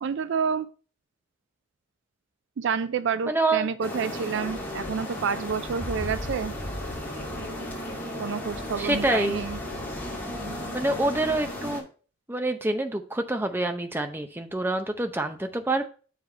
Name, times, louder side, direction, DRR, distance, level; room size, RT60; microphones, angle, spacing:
voice 1, 0.0-0.7 2.6-6.5 8.2-9.6, right 6 dB, 55° right, 13 dB, 0.3 m, -29 dB
voice 2, 3.3-3.7 8.8-9.4 10.7-11.9 12.3-15.8, right 2 dB, 10° right, 6 dB, 0.6 m, -26 dB
sound 1, 3.8-11.8, left 1 dB, 10° left, 2.3 m, -34 dB
7.0 x 4.8 x 4.3 m, 0.38 s
head